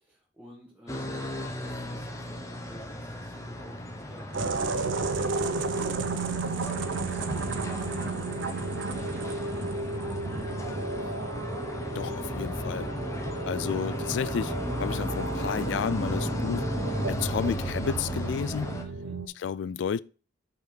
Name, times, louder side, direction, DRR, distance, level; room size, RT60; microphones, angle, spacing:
voice 1, 0.0-11.1 12.5-12.9 18.8-19.2, equal, 10° right, 1.3 m, -51 dB
sound 1, 0.9-18.8, left 1 dB, 15° left, 0.7 m, -35 dB
sound 2, 4.3-19.3, right 3 dB, 75° right, 0.6 m, -33 dB
voice 2, 11.9-12.9 13.5-16.7 17.1-18.7 19.4-20.0, left 7 dB, 65° left, 0.3 m, -31 dB
5.6 x 4.0 x 4.4 m
head